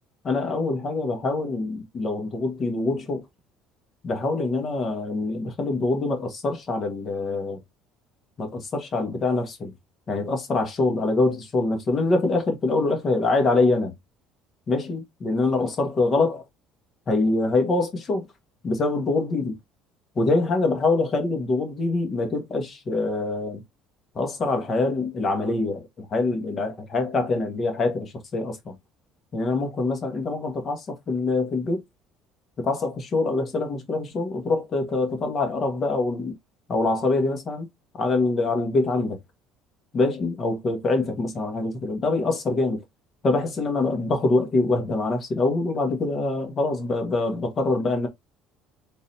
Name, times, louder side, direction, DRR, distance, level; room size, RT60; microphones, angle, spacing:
voice 1, 0.2-3.2 4.0-7.6 8.4-9.7 10.1-13.9 14.7-16.4 17.1-18.3 18.6-19.6 20.1-23.6 24.1-28.8 29.3-31.8 32.6-36.3 36.7-37.7 38.0-39.2 39.9-42.8 43.2-48.1, left 3 dB, 40° left, 1.4 m, -24 dB
3.8 x 2.7 x 3.1 m
supercardioid pair, 90°, 0 cm